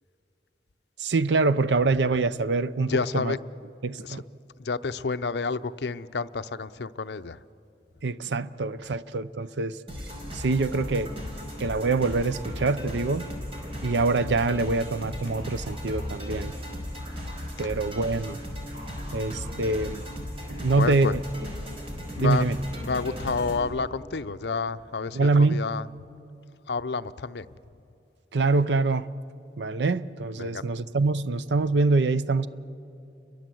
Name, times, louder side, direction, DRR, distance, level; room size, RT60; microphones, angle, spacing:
voice 1, 1.0-3.3 3.8-4.2 8.0-9.8 10.3-11.1 11.6-13.3 13.8-16.5 17.6-18.4 19.1-20.0 20.5-21.2 22.2-22.6 25.1-25.6 28.3-29.1 29.6-32.5, right 3 dB, 80° right, 15 dB, 0.6 m, -25 dB
voice 2, 2.9-3.4 4.0-4.2 4.6-7.4 19.1-19.2 19.5-19.6 20.7-21.1 22.2-22.5 22.8-25.8 26.7-27.5 30.4-30.6, left 4 dB, 70° left, 11 dB, 0.6 m, -29 dB
sound 1, 9.9-23.6, equal, 35° right, 4.8 m, -36 dB
29.5 x 22.5 x 7.8 m, 2.7 s
head